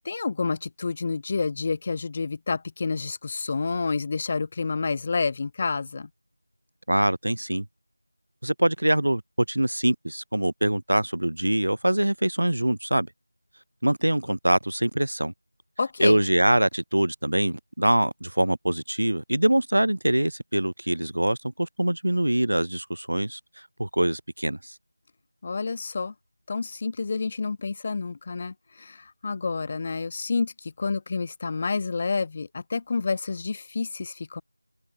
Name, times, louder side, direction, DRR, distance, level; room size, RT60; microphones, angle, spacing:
voice 1, 0.0-6.1 15.8-16.3 25.4-26.1 26.5-34.4, left 4 dB, 20° left, 2.4 m, -29 dB
voice 2, 6.9-7.6 8.4-9.2 9.5-13.1 13.8-15.3 16.0-23.4 23.8-24.7, right 1 dB, 80° right, 1.6 m, -24 dB
open air
figure-of-eight pair, 175°, 0 cm